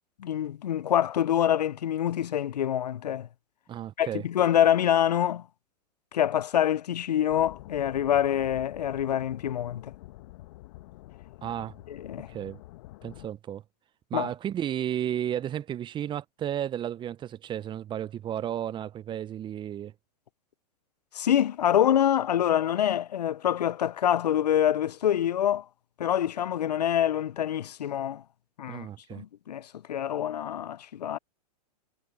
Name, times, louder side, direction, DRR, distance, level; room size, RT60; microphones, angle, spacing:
voice 1, 0.2-3.3 4.0-5.4 6.1-9.9 11.9-12.3 14.1-14.3 21.1-25.7 26.0-28.2 28.6-31.2, left 10 dB, 80° left, 0.6 m, -26 dB
voice 2, 3.7-4.2 11.4-11.7 12.3-12.6 13.0-13.6 14.1-19.9 28.7-29.2, right 10 dB, 25° right, 0.8 m, -33 dB
sound 1, 7.3-13.3, left 17 dB, 55° left, 1.5 m, -47 dB
hypercardioid pair, 105°, 20 cm